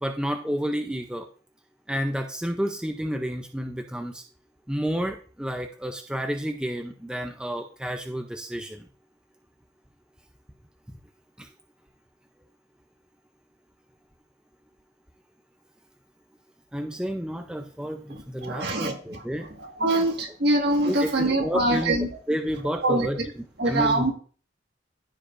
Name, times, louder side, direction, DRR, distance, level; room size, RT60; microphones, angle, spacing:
voice 1, 0.0-1.3 1.9-4.2 4.7-8.9 11.4-11.5 16.7-19.5 19.8-19.9 20.9-23.2 23.6-24.1, equal, 5° right, 4 dB, 0.5 m, -30 dB
voice 2, 18.1-19.2 19.6-22.1 22.8-23.3 23.6-24.1, right 2 dB, 60° right, 2 dB, 1.7 m, -24 dB
14.5 x 5.1 x 2.5 m, 0.41 s
head